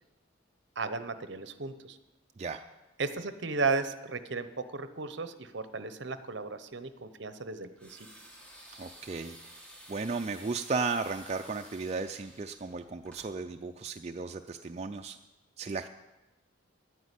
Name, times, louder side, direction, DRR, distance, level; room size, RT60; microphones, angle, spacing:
voice 1, 0.8-2.0 3.0-8.1, right 4 dB, 65° right, 11 dB, 0.8 m, -35 dB
voice 2, 2.4-2.7 8.8-9.5 9.9-15.2 15.6-15.9, right 4 dB, 30° right, 5 dB, 0.4 m, -35 dB
sound 1, 7.8-13.3, right 1 dB, 5° left, 1.9 m, -52 dB
10.0 x 9.5 x 8.2 m, 1.1 s
head